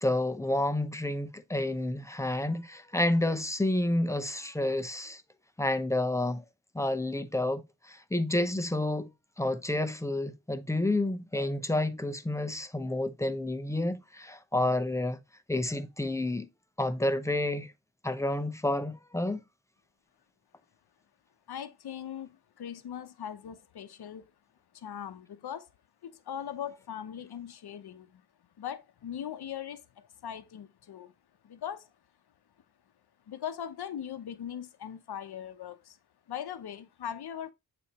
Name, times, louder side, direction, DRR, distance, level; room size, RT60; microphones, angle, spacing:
voice 1, 0.0-5.2 5.6-6.4 6.7-7.6 7.9-9.1 9.4-15.2 15.5-16.5 16.8-17.7 18.0-19.4, left 1 dB, 10° left, 0.7 m, -29 dB
voice 2, 21.5-22.3 22.6-24.3 24.7-25.7 26.0-28.1 28.6-31.1 31.4-31.9 33.3-36.0 36.3-37.5, left 9 dB, 85° left, 0.8 m, -40 dB
8.5 x 4.2 x 2.9 m
wide cardioid pair, 160°, 38 cm